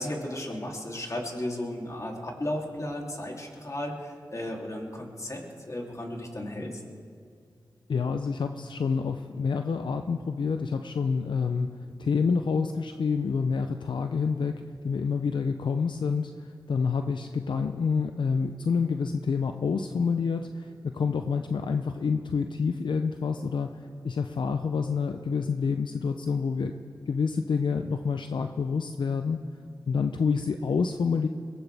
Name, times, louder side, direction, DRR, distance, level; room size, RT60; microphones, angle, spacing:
voice 1, 0.0-5.4 5.7-6.8, left 1 dB, 40° left, -1 dB, 3.1 m, -34 dB
voice 2, 7.9-11.7 12.0-26.8 27.1-29.4 29.9-31.3, left 5 dB, 75° left, 7 dB, 0.6 m, -28 dB
22.5 x 17.0 x 3.5 m, 2.2 s
cardioid pair, 40°, 8 cm